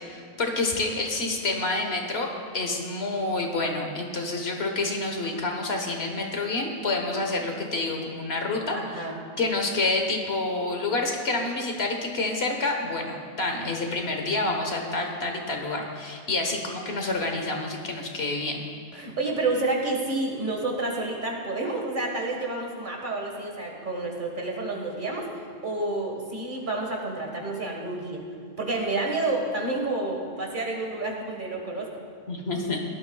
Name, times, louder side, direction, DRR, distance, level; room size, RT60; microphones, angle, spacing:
voice 1, 0.0-9.1 9.4-18.7 32.3-32.8, left 2 dB, 70° left, 2 dB, 1.5 m, -28 dB
voice 2, 8.7-9.2 18.9-25.3 25.6-28.2 28.6-31.9, right 2 dB, 50° right, 0 dB, 1.7 m, -29 dB
17.5 x 12.0 x 2.3 m, 2.1 s
omnidirectional pair, 1.1 m